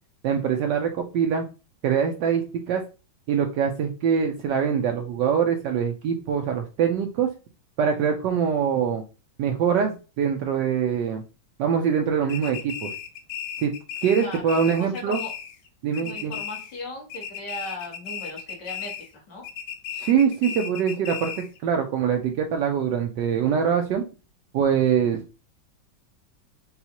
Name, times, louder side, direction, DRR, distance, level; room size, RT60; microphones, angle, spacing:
voice 1, 0.2-1.4 1.8-2.8 3.3-7.3 7.8-9.0 9.4-11.2 11.6-12.9 13.6-13.7 14.0-15.2 15.8-16.3 20.0-24.0 24.5-25.2, right 7 dB, 75° right, 3 dB, 1.1 m, -23 dB
sound 1, 12.3-15.7 15.9-16.8 17.1-19.1 19.4-21.6, left 8 dB, 90° left, 1.5 m, -35 dB
voice 2, 14.2-15.3 16.0-19.5, left 1 dB, 60° left, -2 dB, 2.2 m, -38 dB
5.4 x 2.4 x 2.8 m, 0.32 s
omnidirectional pair, 2.1 m